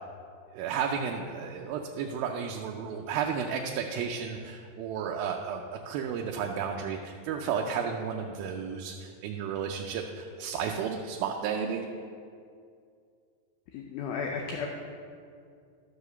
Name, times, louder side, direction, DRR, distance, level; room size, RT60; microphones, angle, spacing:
voice 1, 0.5-11.9, right 7 dB, 90° right, 1 dB, 2.5 m, -33 dB
voice 2, 13.7-14.7, left 5 dB, 75° left, 1 dB, 2.0 m, -34 dB
12.5 x 4.9 x 6.6 m, 2.3 s
omnidirectional pair, 4.1 m